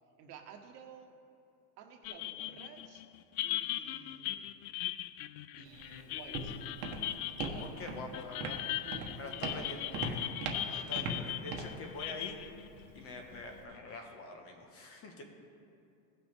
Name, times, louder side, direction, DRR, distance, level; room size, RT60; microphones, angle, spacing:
voice 1, 0.2-1.1 1.8-3.0 3.4-4.5 5.6-6.5 7.5-8.0 8.8-10.0 10.7-11.1, right 7 dB, 85° right, 3 dB, 1.4 m, -53 dB
sound 1, 2.0-13.8, left 14 dB, 65° left, 0.5 m, -39 dB
Walk footsteps, 5.7-13.6, right 3 dB, 40° right, 1.3 m, -41 dB
voice 2, 7.6-8.6 9.1-10.2 10.6-12.4 12.9-15.3, left 3 dB, 30° left, 3 dB, 1.2 m, -45 dB
17.0 x 6.0 x 3.4 m, 2.6 s
supercardioid pair, 145°, 47 cm